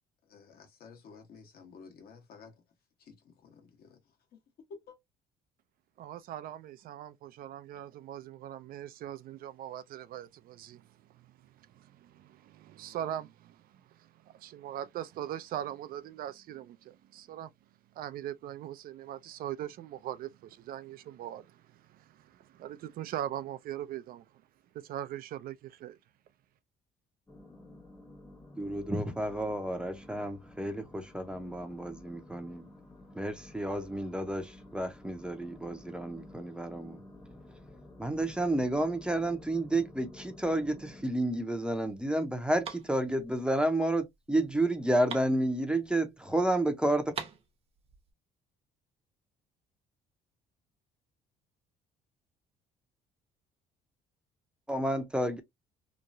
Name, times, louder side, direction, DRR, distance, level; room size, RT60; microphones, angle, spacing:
voice 1, 0.3-2.5 3.0-4.0 4.3-4.4 4.7-5.0, left 5 dB, 65° left, 1.2 m, -52 dB
voice 2, 6.0-17.5 18.0-24.3 24.7-26.0, right 11 dB, 60° right, 0.4 m, -41 dB
sound 1, 27.3-41.0, left 1 dB, 10° left, 0.9 m, -52 dB
voice 3, 28.6-32.7 33.1-37.0 38.0-47.1 54.7-55.4, right 1 dB, 5° right, 0.6 m, -31 dB
sound 2, 41.7-46.2 46.5-46.6 46.9-48.1, right 6 dB, 35° right, 0.7 m, -45 dB
2.9 x 2.2 x 2.6 m
cardioid pair, 110°, 17 cm